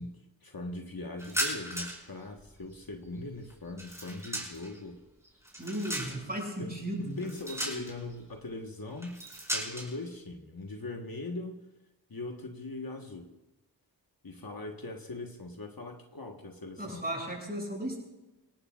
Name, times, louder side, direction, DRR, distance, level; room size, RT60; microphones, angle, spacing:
voice 1, 0.0-5.0 6.6-11.6 12.1-13.4 14.2-17.0, left 2 dB, 55° left, 3 dB, 1.5 m, -41 dB
sound 1, 1.2-2.1 2.4-4.8 5.2-6.4 7.2-8.1 9.0-9.9, right 1 dB, 5° right, 4.8 m, -36 dB
voice 2, 5.6-7.3 16.8-18.0, right 1 dB, 20° right, -2 dB, 6.6 m, -35 dB
26.0 x 17.5 x 2.5 m, 1.0 s
wide cardioid pair, 70°, 42 cm